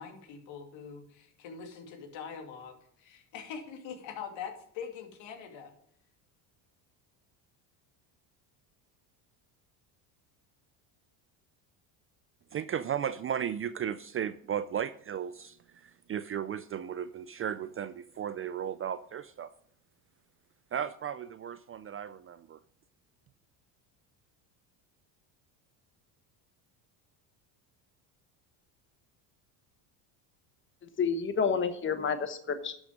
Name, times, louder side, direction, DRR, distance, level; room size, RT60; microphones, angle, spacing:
voice 1, 0.0-5.7, left 6 dB, 65° left, 4 dB, 2.5 m, -43 dB
voice 2, 12.5-19.5 20.7-22.6, right 9 dB, 30° right, 13 dB, 0.4 m, -35 dB
voice 3, 31.0-32.7, left 6 dB, 25° left, 9 dB, 1.1 m, -29 dB
11.5 x 6.2 x 5.1 m, 0.67 s
supercardioid pair, 95°, 48 cm